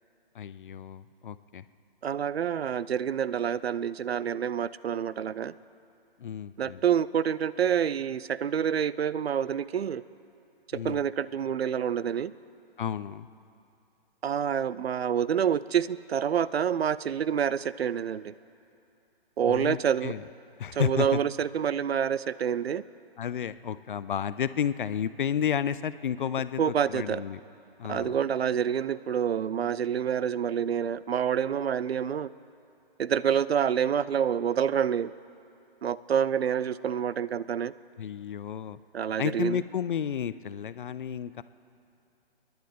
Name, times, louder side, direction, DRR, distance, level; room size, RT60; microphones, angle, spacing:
voice 1, 0.3-1.6 6.2-6.8 10.7-11.0 12.8-13.3 19.4-20.2 20.6-21.2 23.2-27.4 27.8-28.2 38.0-38.8 39.2-41.4, left 8 dB, 55° left, 15 dB, 0.5 m, -32 dB
voice 2, 2.0-5.5 6.6-10.0 10.8-12.3 14.2-18.3 19.4-20.1 20.7-22.8 26.6-27.2 27.9-32.3 33.0-35.1 35.8-37.7 38.9-39.6, right 8 dB, 80° right, 18 dB, 0.5 m, -27 dB
30.0 x 10.5 x 3.6 m, 2.7 s
figure-of-eight pair, 135°, 31 cm